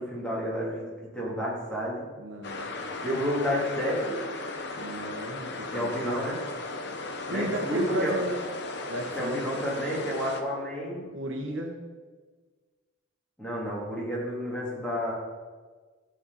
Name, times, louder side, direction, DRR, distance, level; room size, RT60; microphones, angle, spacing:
voice 1, 0.0-2.0 3.0-4.2 5.7-6.4 7.3-8.1 9.1-11.1 13.4-15.1, equal, 5° left, -6 dB, 3.2 m, -30 dB
voice 2, 2.2-2.7 4.8-6.1 7.3-8.4 8.9-9.6 11.1-11.8, right 1 dB, 65° right, 2 dB, 1.4 m, -34 dB
sound 1, 2.4-10.4, left 3 dB, 55° left, 0.9 m, -36 dB
14.0 x 7.5 x 4.2 m, 1.4 s
head